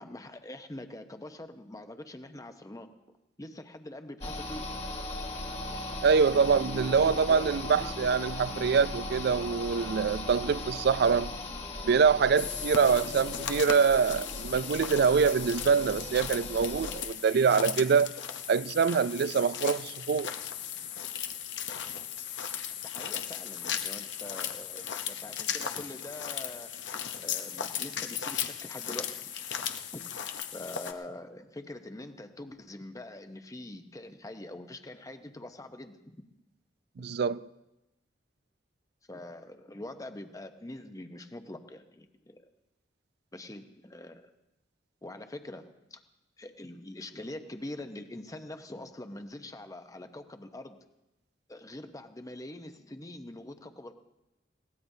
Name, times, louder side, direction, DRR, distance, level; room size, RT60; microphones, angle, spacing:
voice 1, 0.0-2.9 3.4-4.6 6.5-8.2 12.9-13.1 20.7-20.9 22.8-26.7 27.2-29.3 29.6-29.7 29.9-30.0 30.5-36.2 39.1-42.4 43.3-44.3 45.0-46.0 46.4-50.8 51.5-53.9, left 1 dB, 20° left, 0.8 m, -44 dB
sound 1, 4.2-17.0, left 2 dB, 35° left, 1.5 m, -38 dB
voice 2, 6.0-11.3 11.8-18.1 18.5-20.3 37.0-37.4, right 5 dB, 60° right, 0.4 m, -25 dB
sound 2, 12.4-30.9, left 8 dB, 75° left, 0.9 m, -37 dB
22.0 x 17.5 x 2.7 m
head